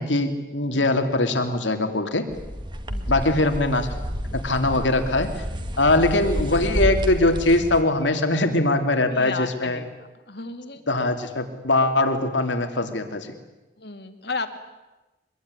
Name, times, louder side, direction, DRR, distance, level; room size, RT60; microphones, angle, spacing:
voice 1, 0.0-2.2 3.1-3.9 4.4-5.4 5.8-9.8 10.9-13.3, left 2 dB, 90° left, 6 dB, 3.1 m, -22 dB
sound 1, 2.3-7.8, equal, 25° right, 1.8 m, -30 dB
voice 2, 2.9-3.4 6.0-6.2 9.1-9.9 10.3-10.8 13.8-14.6, left 3 dB, 65° left, 8 dB, 2.4 m, -34 dB
24.5 x 21.0 x 9.9 m, 1.1 s
head